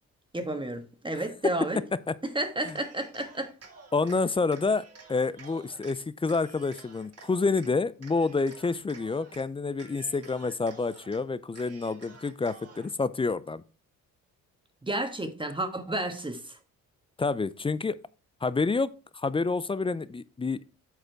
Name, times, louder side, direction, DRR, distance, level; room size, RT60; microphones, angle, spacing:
voice 1, 0.3-1.8 2.3-3.5 14.8-16.6, right 1 dB, 15° right, 1.4 m, -31 dB
voice 2, 1.2-1.5 2.1-2.2 2.6-2.8 3.9-13.6 17.2-18.0 18.4-20.7, left 4 dB, 15° left, 0.4 m, -28 dB
Cheering, 2.6-4.2 4.5-6.0 6.3-7.7 8.0-9.5 9.7-11.2 11.5-12.9, right 4 dB, 45° right, 1.9 m, -51 dB
8.0 x 4.3 x 4.5 m
cardioid pair, 80°, 34 cm